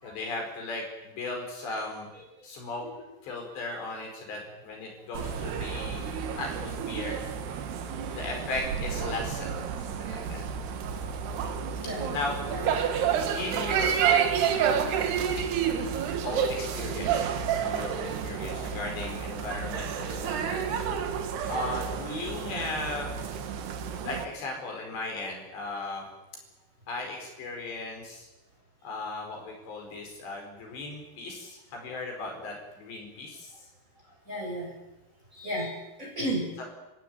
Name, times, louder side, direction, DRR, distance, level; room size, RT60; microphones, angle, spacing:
voice 1, 0.0-2.1 2.4-2.9 3.2-7.2 8.1-10.4 12.1-12.4 13.3-15.1 15.4-15.5 16.2-20.9 21.5-23.1 24.0-26.1 26.9-28.3 28.8-33.7 36.6-36.7, left 3 dB, 60° left, 2 dB, 6.8 m, -37 dB
sound 1, 5.1-24.3, right 8 dB, 65° right, 3.5 m, -30 dB
voice 2, 14.2-14.6 34.3-34.7 35.3-35.7 36.0-36.5, equal, 15° right, -1 dB, 7.7 m, -33 dB
29.0 x 15.5 x 9.5 m, 1.0 s
omnidirectional pair, 5.7 m